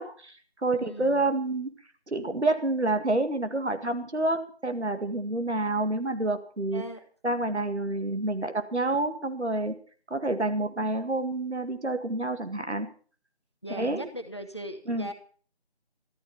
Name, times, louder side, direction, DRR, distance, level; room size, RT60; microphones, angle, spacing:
voice 1, 0.0-1.7 2.1-6.8 7.2-9.7 10.1-12.9 13.7-14.1 14.9-15.1, right 2 dB, 85° right, 8 dB, 2.2 m, -28 dB
voice 2, 0.7-1.2 6.7-7.0 13.6-15.1, right 1 dB, 25° left, 8 dB, 1.0 m, -38 dB
13.0 x 12.0 x 5.8 m, 0.42 s
figure-of-eight pair, 175°, 33 cm